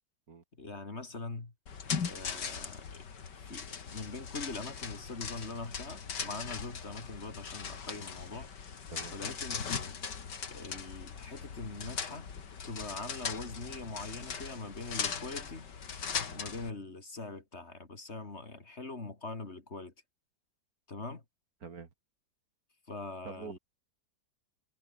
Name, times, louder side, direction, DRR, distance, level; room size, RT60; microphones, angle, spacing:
voice 1, 0.6-1.5 2.0-3.0 3.3-8.5 9.1-10.0 10.5-12.3 12.6-15.7 16.3-19.9 20.9-21.2 22.9-23.6, left 3 dB, 40° left, 2.9 m, -42 dB
sound 1, 1.7-16.7, left 6 dB, 80° left, 2.7 m, -39 dB
voice 2, 23.2-23.6, right 5 dB, 60° right, 2.3 m, -45 dB
omnidirectional pair, 1.8 m